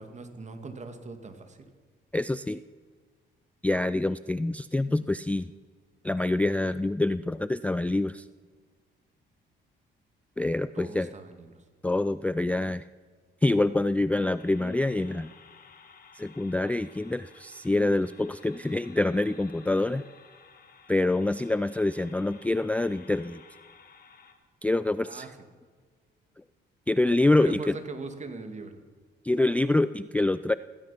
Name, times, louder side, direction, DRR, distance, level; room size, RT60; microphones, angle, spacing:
voice 1, 0.0-1.7 10.7-11.6 25.0-25.3 27.4-28.8, right 3 dB, 35° right, 7 dB, 2.3 m, -40 dB
voice 2, 2.1-2.6 3.6-5.5 6.0-8.3 10.4-11.1 11.8-12.8 13.4-15.3 16.1-20.1 20.9-23.4 24.6-25.3 26.9-27.8 29.2-30.5, left 2 dB, 5° left, 15 dB, 0.4 m, -26 dB
sound 1, 14.4-24.3, left 5 dB, 50° left, 2.3 m, -54 dB
16.5 x 15.5 x 5.8 m, 1.5 s
cardioid pair, 90°, 20 cm